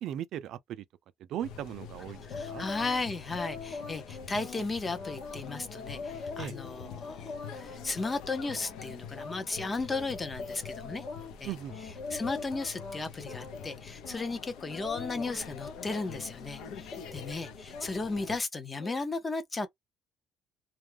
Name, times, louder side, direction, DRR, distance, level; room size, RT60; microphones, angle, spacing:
voice 1, 0.0-0.8 1.2-2.6 6.4-6.5 11.4-11.7, right 11 dB, 60° right, 0.4 m, -38 dB
sound 1, 1.4-18.4, left 6 dB, 85° left, 0.6 m, -46 dB
voice 2, 2.2-11.0 11.4-11.5 12.1-19.7, left 3 dB, 15° left, 0.5 m, -35 dB
sound 2, 2.3-3.0 3.3-11.3 11.7-13.0 13.3-13.7 14.0-17.4 17.7-18.3 18.8-18.9, left 4 dB, 45° left, 0.9 m, -43 dB
2.3 x 2.0 x 3.2 m
cardioid pair, 170°, 0 cm